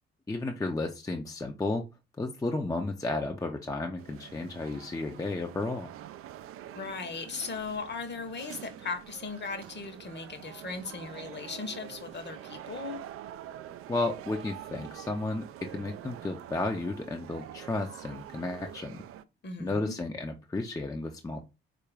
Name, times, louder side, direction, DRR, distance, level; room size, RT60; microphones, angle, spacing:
voice 1, 0.3-1.8 2.2-5.9 13.9-19.0 19.6-21.4, left 2 dB, 10° left, 0.6 m, -33 dB
sound 1, 4.0-19.2, right 12 dB, 45° right, 0.4 m, -46 dB
voice 2, 6.7-13.0 19.4-19.9, left 4 dB, 35° left, 1.0 m, -38 dB
4.3 x 2.5 x 3.3 m
figure-of-eight pair, 45°, 32 cm